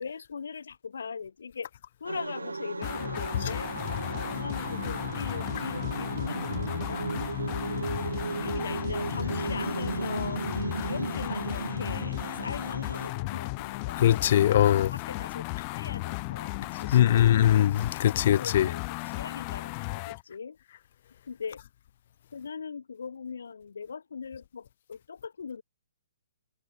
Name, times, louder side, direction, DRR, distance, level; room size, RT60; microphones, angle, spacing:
voice 1, 0.0-1.7 2.0-3.7 4.2-7.1 7.7-7.9 8.4-10.4 10.8-14.4 14.9-17.4 18.3-20.6 21.3-21.6 22.3-25.6, left 6 dB, 70° left, 5.5 m, -40 dB
sound 1, 2.0-13.1, right 3 dB, 80° right, 5.0 m, -35 dB
sound 2, 2.8-20.2, left 33 dB, 30° left, 4.9 m, -35 dB
voice 2, 14.0-14.9 16.9-18.7, left 11 dB, 50° left, 0.7 m, -21 dB
figure-of-eight pair, 130°, 0 cm